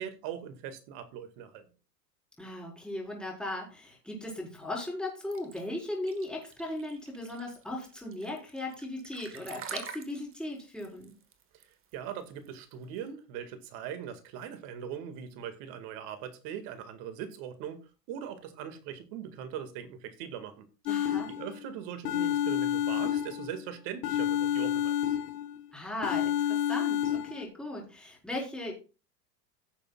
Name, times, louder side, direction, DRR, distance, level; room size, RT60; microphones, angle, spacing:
voice 1, 0.0-1.7 11.9-20.7 21.3-24.9, right 9 dB, 50° right, 9 dB, 2.1 m, -40 dB
voice 2, 2.4-11.1 20.9-21.3 25.7-28.7, left 1 dB, ahead, -2 dB, 4.6 m, -37 dB
sound 1, 5.3-13.0, right 7 dB, 25° right, 1.5 m, -46 dB
sound 2, 20.9-21.6 22.0-23.6 24.0-25.6 26.0-27.5, left 10 dB, 70° left, 1.1 m, -29 dB
16.5 x 7.0 x 2.4 m, 0.33 s
hypercardioid pair, 105°, 50 cm